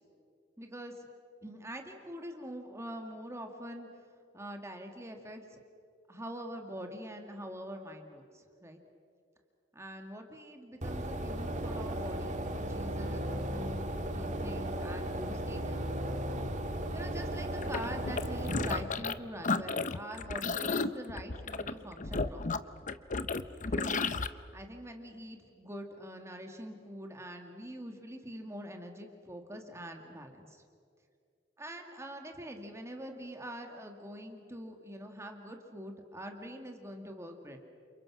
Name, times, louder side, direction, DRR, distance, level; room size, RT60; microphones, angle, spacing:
voice 1, 0.6-1.1 1.4-3.9 4.3-5.6 6.1-8.8 9.7-16.0 16.9-22.7 23.7-23.9 24.5-30.6 31.6-37.6, equal, 15° right, 3 dB, 2.1 m, -44 dB
sound 1, 10.8-18.8, right 1 dB, 40° right, 2.0 m, -35 dB
sound 2, 17.6-19.2 19.4-24.3, left 4 dB, 45° left, 0.8 m, -33 dB
30.0 x 27.5 x 6.2 m, 2.3 s
head